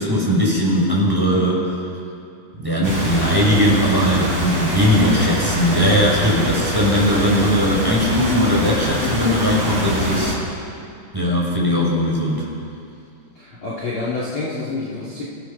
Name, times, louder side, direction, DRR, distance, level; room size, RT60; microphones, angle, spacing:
voice 1, 0.0-1.6 2.6-10.3 11.1-12.5, equal, 5° right, -4 dB, 5.5 m, -19 dB
voice 2, 2.7-3.2 5.7-6.0 10.1-10.4 13.3-15.2, left 3 dB, 35° left, -6 dB, 3.2 m, -28 dB
sound 1, 2.8-10.3, right 1 dB, 25° right, 5.2 m, -25 dB
29.5 x 16.5 x 7.0 m, 2.5 s
omnidirectional pair, 4.5 m